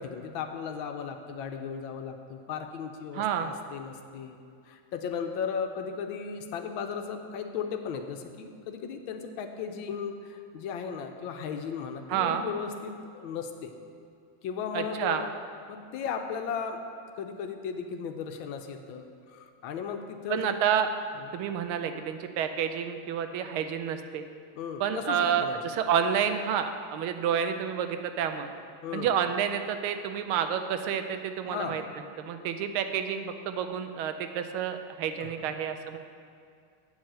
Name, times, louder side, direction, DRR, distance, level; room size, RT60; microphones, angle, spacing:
voice 1, 0.0-4.4 4.7-13.7 14.4-15.3 15.7-16.8 17.2-20.6 21.1-21.3 24.6-25.6 28.8-29.1 31.4-31.8 35.2-35.5, left 6 dB, 75° left, 5 dB, 1.4 m, -36 dB
voice 2, 3.1-3.5 12.1-12.4 14.7-15.2 20.3-20.9 21.3-24.2 24.8-28.5 28.9-31.8 32.2-36.0, right 8 dB, 85° right, 8 dB, 1.5 m, -29 dB
8.5 x 4.8 x 7.5 m, 2.4 s
omnidirectional pair, 2.3 m